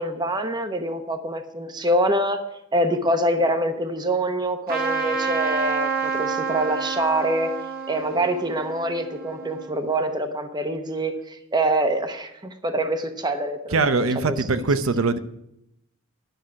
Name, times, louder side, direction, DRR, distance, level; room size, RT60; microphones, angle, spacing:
voice 1, 0.0-2.4 2.7-7.5 7.9-13.8, right 1 dB, 20° right, 7 dB, 0.9 m, -25 dB
Trumpet, 4.7-9.7, right 5 dB, 50° right, 1.1 m, -28 dB
voice 2, 13.7-15.2, right 3 dB, 85° right, 11 dB, 0.7 m, -22 dB
10.5 x 6.4 x 8.5 m, 0.81 s
head